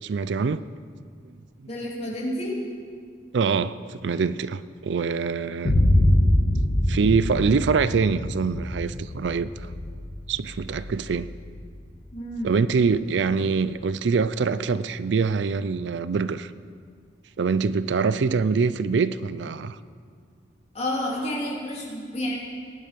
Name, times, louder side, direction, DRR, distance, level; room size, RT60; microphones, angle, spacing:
voice 1, 0.0-0.6 1.6-1.7 3.3-5.7 6.9-9.7 10.3-11.3 12.4-16.5 17.4-19.8, right 5 dB, 70° right, 0.4 m, -24 dB
voice 2, 1.7-2.6 12.1-12.5 20.7-22.3, left 1 dB, 35° left, 3.0 m, -30 dB
Boom, 5.6-13.5, left 1 dB, 65° left, 1.4 m, -25 dB
18.0 x 11.0 x 5.2 m
head